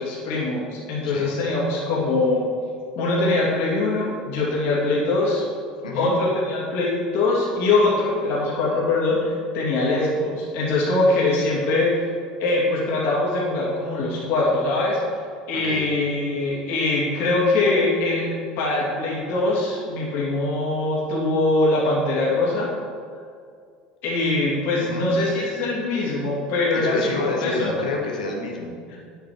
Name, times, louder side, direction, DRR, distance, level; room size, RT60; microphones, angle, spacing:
voice 1, 0.0-2.5 2.9-5.4 5.9-12.1 12.4-15.0 15.5-22.7 24.0-27.7 28.9-29.0, left 2 dB, 60° left, -5 dB, 2.9 m, -22 dB
voice 2, 5.8-6.1 15.5-15.9 24.8-25.1 26.7-29.0, left 3 dB, 90° left, 0 dB, 1.6 m, -29 dB
9.6 x 8.3 x 4.8 m, 2.2 s
hypercardioid pair, 80°, 4 cm